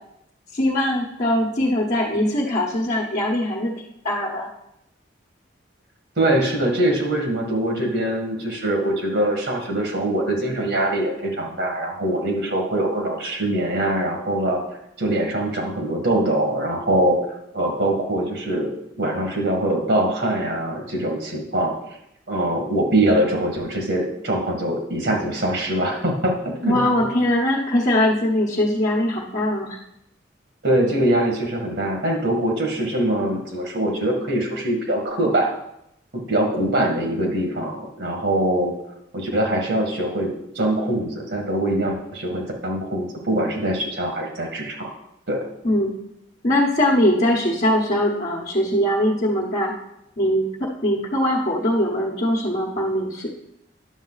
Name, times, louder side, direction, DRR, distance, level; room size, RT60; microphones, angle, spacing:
voice 1, 0.5-3.7 4.0-4.5 26.6-29.8 45.6-45.9 46.4-49.7 50.2-53.3, left 1 dB, 45° left, -4 dB, 1.2 m, -21 dB
voice 2, 6.2-14.6 15.0-21.7 22.3-26.8 30.6-35.6 36.1-38.7 39.1-44.9 45.3-45.4, right 1 dB, 65° right, 1 dB, 2.0 m, -23 dB
10.5 x 6.8 x 4.1 m, 0.79 s
head